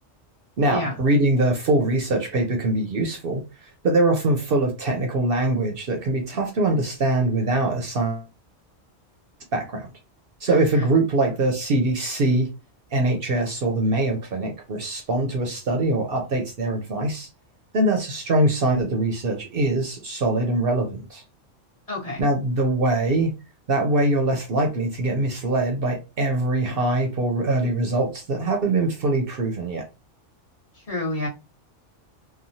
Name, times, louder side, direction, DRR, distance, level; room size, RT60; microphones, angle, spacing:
voice 1, 0.6-8.2 9.5-9.9 10.4-12.5 12.9-17.3 17.7-21.2 22.2-23.3 23.7-29.9, right 2 dB, 60° right, 0.7 m, -23 dB
voice 2, 10.5-10.8 21.9-22.2 30.7-31.3, left 2 dB, 35° left, 0.9 m, -29 dB
2.9 x 2.2 x 2.6 m
omnidirectional pair, 1.2 m